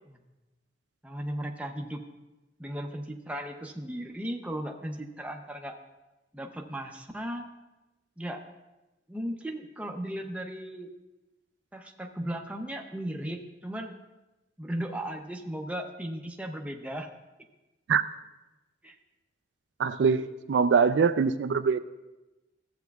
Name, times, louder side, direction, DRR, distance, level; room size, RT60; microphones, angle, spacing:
voice 1, 1.0-2.0 2.6-5.7 6.3-7.5 8.2-8.4 9.1-10.9 11.7-13.9 14.6-17.1 18.8-19.0, right 1 dB, 5° right, 2 dB, 0.6 m, -36 dB
voice 2, 19.8-21.8, right 6 dB, 70° right, 12 dB, 0.3 m, -23 dB
14.5 x 8.0 x 2.3 m, 1.0 s
head